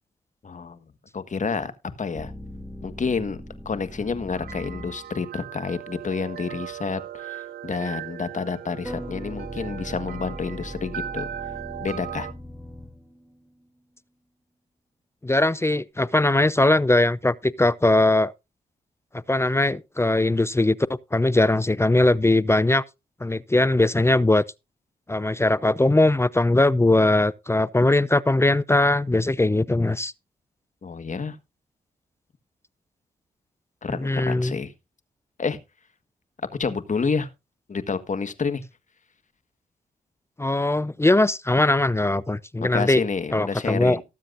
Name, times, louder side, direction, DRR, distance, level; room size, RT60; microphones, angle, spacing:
voice 1, 0.4-0.8 1.1-1.7 2.0-2.3 2.8-11.3 11.8-12.3 30.8-31.4 33.8-34.7 35.4-35.6 36.5-37.3 37.7-38.6 42.6-44.0, left 5 dB, 50° left, 1.6 m, -29 dB
sound 1, 2.1-5.3 8.8-13.4, equal, 5° right, 1.9 m, -39 dB
sound 2, 3.7-12.3, right 10 dB, 75° right, 0.7 m, -38 dB
voice 2, 15.2-18.3 19.3-20.8 21.1-22.8 23.2-24.4 25.1-30.1 34.0-34.6 40.4-43.0 43.3-44.0, left 2 dB, 15° left, 0.6 m, -20 dB
19.0 x 7.5 x 2.6 m
supercardioid pair, 45°, 17 cm